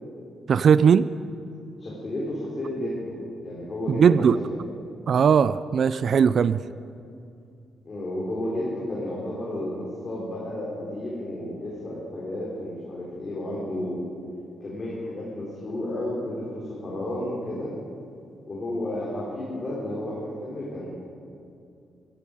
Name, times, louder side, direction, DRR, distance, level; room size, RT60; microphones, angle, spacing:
voice 1, 0.5-1.1 3.9-4.4 5.1-6.6, right 7 dB, 55° right, 16 dB, 0.3 m, -19 dB
voice 2, 1.8-3.0 3.4-4.6 7.9-14.0 14.6-17.7 18.5-20.9, left 1 dB, 35° left, -5 dB, 3.6 m, -32 dB
15.0 x 15.0 x 5.0 m, 2.5 s
cardioid pair, 90°, 0 cm